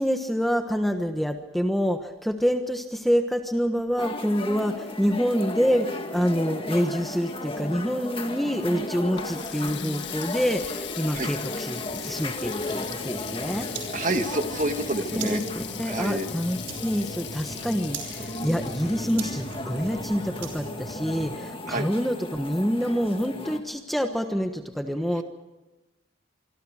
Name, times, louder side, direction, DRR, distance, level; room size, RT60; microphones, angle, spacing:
voice 1, 0.0-13.7 15.1-25.2, equal, ahead, 5 dB, 1.2 m, -27 dB
sound 1, 4.0-23.6, left 2 dB, 25° left, 1.9 m, -36 dB
Water tap faucet, 8.8-20.4, left 11 dB, 60° left, 1.6 m, -40 dB
sound 2, 11.9-21.4, right 2 dB, 60° right, 5.4 m, -40 dB
voice 2, 12.6-13.1 13.8-15.4 15.9-16.3 21.7-21.9 25.2-25.3, right 2 dB, 40° right, 6 dB, 1.9 m, -29 dB
25.5 x 25.0 x 4.9 m, 1.0 s
head